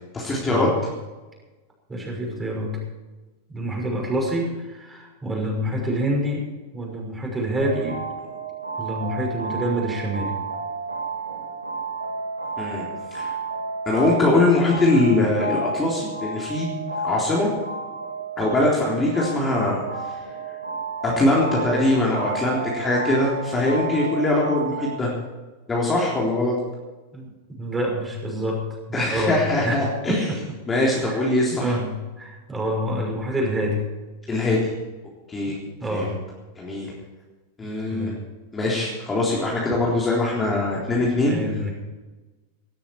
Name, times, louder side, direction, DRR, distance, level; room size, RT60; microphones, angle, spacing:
voice 1, 0.1-0.7 12.6-12.8 13.1-13.3 13.9-16.8 17.0-17.5 18.4-19.8 21.0-25.1 25.7-26.5 28.9-30.2 30.7-31.7 34.3-34.7 35.3-35.6 35.9-36.1 36.6-36.9 37.6-38.1 38.5-41.4, left 2 dB, 15° left, -4 dB, 3.8 m, -22 dB
voice 2, 1.9-2.8 3.5-6.4 6.7-8.0 8.7-10.4 27.1-27.3 27.6-28.6 28.9-29.4 29.6-30.4 30.7-31.2 31.5-33.8 35.5-36.1 37.6-38.2 41.2-41.7, right 1 dB, 15° right, -1 dB, 6.0 m, -27 dB
sound 1, 7.6-25.0, right 3 dB, 80° right, 3.3 m, -32 dB
18.0 x 13.0 x 4.8 m, 1.2 s
figure-of-eight pair, 90°, 0 cm